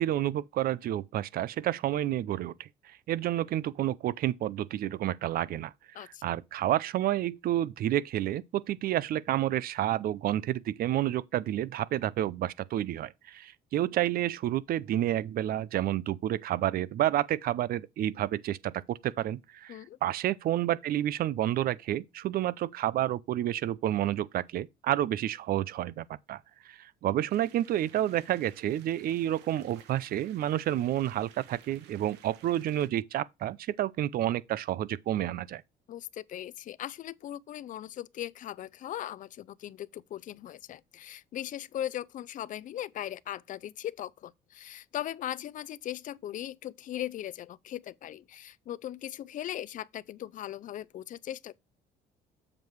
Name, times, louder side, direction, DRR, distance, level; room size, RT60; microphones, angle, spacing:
voice 1, 0.0-35.6, right 12 dB, 60° right, 0.6 m, -30 dB
sound 1, 27.3-32.9, right 9 dB, 85° right, 1.4 m, -56 dB
voice 2, 35.9-51.6, left 12 dB, 50° left, 0.5 m, -39 dB
7.5 x 4.8 x 4.6 m
cardioid pair, 110°, 17 cm